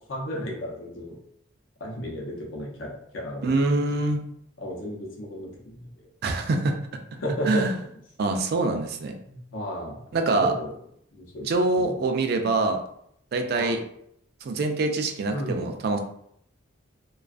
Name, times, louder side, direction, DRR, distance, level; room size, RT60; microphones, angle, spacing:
voice 1, 0.1-1.2 1.8-3.5 4.6-5.9 7.2-7.7 9.3-10.7 11.1-11.5 11.7-12.0 13.5-13.7 15.3-15.7, equal, 80° left, -1 dB, 0.6 m, -33 dB
voice 2, 3.4-4.2 6.2-6.7 7.5-7.7 8.2-9.1 10.1-10.5 11.4-12.8 13.3-13.8 14.4-16.0, right 2 dB, 55° right, 5 dB, 0.3 m, -24 dB
2.4 x 2.3 x 2.4 m, 0.70 s
head